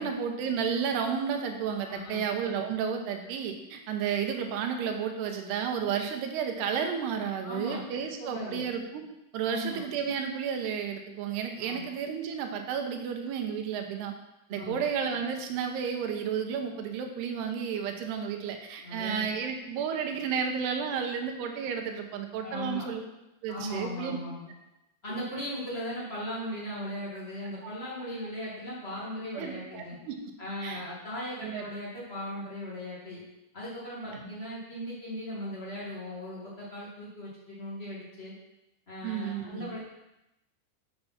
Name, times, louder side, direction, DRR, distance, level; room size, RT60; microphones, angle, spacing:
voice 1, 0.0-9.0 9.3-14.1 14.5-23.0 23.4-24.2 27.6-27.7 29.3-30.1 30.6-30.8 31.4-31.6 34.1-34.3 39.0-39.6, right 7 dB, 75° right, 4 dB, 2.8 m, -32 dB
voice 2, 1.8-2.2 7.4-8.7 9.4-9.8 11.6-11.9 14.6-14.8 18.8-19.2 22.4-22.9 23.5-24.5 25.0-30.0 30.4-33.2 33.5-38.3 38.9-39.8, equal, 75° left, -7 dB, 0.5 m, -38 dB
7.0 x 6.7 x 5.9 m, 0.92 s
omnidirectional pair, 5.0 m